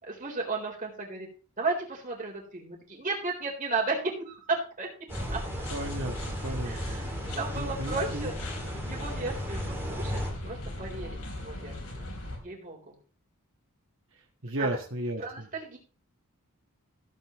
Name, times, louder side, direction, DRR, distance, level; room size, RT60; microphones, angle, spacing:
voice 1, 0.0-1.3 1.6-4.9 5.3-5.6 6.6-8.3 8.8-12.1 12.4-13.0 14.6-14.7 15.2-15.8, right 3 dB, 35° right, -1 dB, 3.9 m, -34 dB
sound 1, 5.1-12.4, left 1 dB, 75° left, 3.9 m, -39 dB
sound 2, 5.1-10.3, equal, 10° right, 2.4 m, -36 dB
voice 2, 5.7-7.0 7.5-8.3 14.1-15.5, right 1 dB, 60° right, 2 dB, 1.6 m, -35 dB
15.5 x 8.7 x 3.1 m, 0.38 s
head